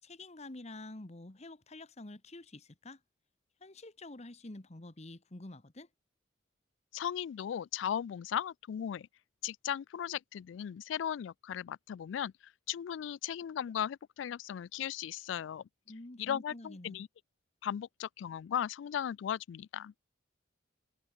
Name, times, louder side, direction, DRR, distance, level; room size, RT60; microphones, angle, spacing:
voice 1, 0.0-3.0 3.6-5.9 15.9-17.1, left 2 dB, 35° left, 1.3 m, -48 dB
voice 2, 6.9-9.1 9.4-15.6 16.2-17.1 17.6-19.9, left 9 dB, 75° left, 0.3 m, -37 dB
head